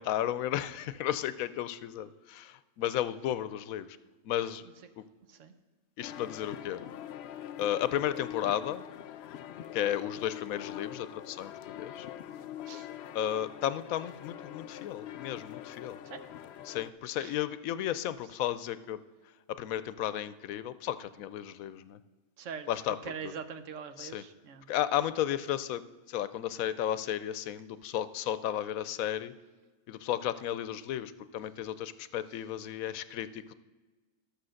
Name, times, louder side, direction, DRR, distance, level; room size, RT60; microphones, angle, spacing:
voice 1, 0.0-3.9 4.2-4.7 5.0-5.1 6.0-6.8 7.6-8.8 9.7-12.1 13.1-16.0 16.7-19.0 19.6-22.0 22.7-23.3 24.0-24.2 24.7-25.8 26.1-29.3 29.9-33.5, left 11 dB, 80° left, 15 dB, 1.0 m, -33 dB
sound 1, 6.0-16.9, left 11 dB, 65° left, 0.7 m, -43 dB
voice 2, 22.4-22.7 23.0-24.6, right 6 dB, 65° right, 10 dB, 1.0 m, -42 dB
12.0 x 6.7 x 6.4 m, 1.3 s
omnidirectional pair, 1.4 m